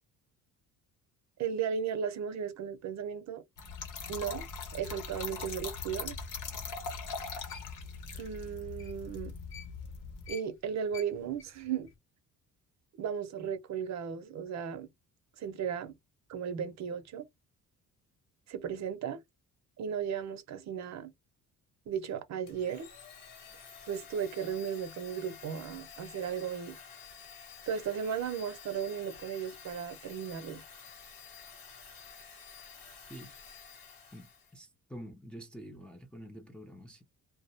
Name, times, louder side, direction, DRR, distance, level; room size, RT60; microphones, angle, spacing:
voice 1, 1.4-3.4 4.1-4.5 4.7-6.2 8.2-9.3 10.3-11.9 13.0-14.9 15.4-15.9 16.3-17.3 18.5-19.2 19.8-21.1 21.9-22.9 23.9-26.8 27.7-30.6, right 7 dB, 55° right, 0.6 m, -35 dB
Trickle dribble / Fill (with liquid), 3.6-10.3, left 5 dB, 65° left, 0.9 m, -41 dB
sound 1, 7.0-10.0 10.2-12.0, left 7 dB, 40° left, 0.7 m, -51 dB
Domestic sounds home sounds, 22.5-34.6, left 6 dB, 85° left, 1.2 m, -51 dB
voice 2, 34.1-37.0, equal, 5° left, 0.4 m, -47 dB
2.2 x 2.0 x 2.7 m
cardioid pair, 115°, 34 cm